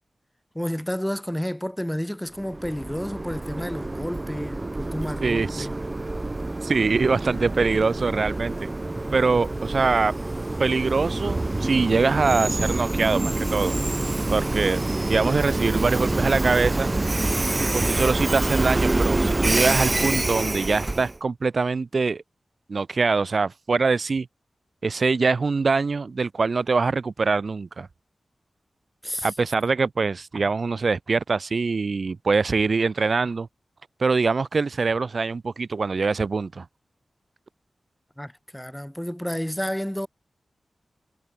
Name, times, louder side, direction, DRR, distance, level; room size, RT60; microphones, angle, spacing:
voice 1, 0.5-5.8 14.6-14.8 29.0-29.3 38.2-40.1, equal, 5° left, 0.9 m, -31 dB
Train, 2.4-21.2, right 2 dB, 25° right, 2.1 m, -26 dB
voice 2, 5.2-5.7 6.6-8.7 9.1-10.1 10.6-13.8 14.3-14.8 15.1-16.9 17.7-22.2 22.7-24.3 24.8-27.9 29.2-33.5 34.0-36.6, right 4 dB, 55° right, 0.6 m, -23 dB
wide cardioid pair, 95°, 0 cm